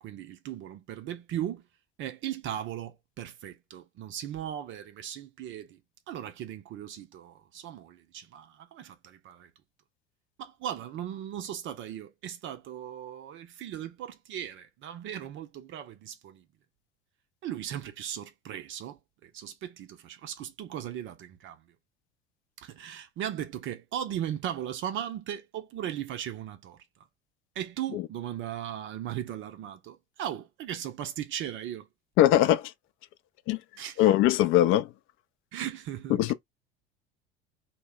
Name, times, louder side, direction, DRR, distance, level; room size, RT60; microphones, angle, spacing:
voice 1, 0.0-1.6 2.0-5.8 6.1-9.5 10.4-16.4 17.4-21.6 22.6-26.8 27.6-31.9 33.8-34.1 35.5-36.3, right 10 dB, 40° right, 0.6 m, -37 dB
voice 2, 32.2-32.7 33.5-33.6 34.0-34.9 36.1-36.3, left 13 dB, 45° left, 0.4 m, -21 dB
2.1 x 2.1 x 3.5 m
figure-of-eight pair, 70°, 30 cm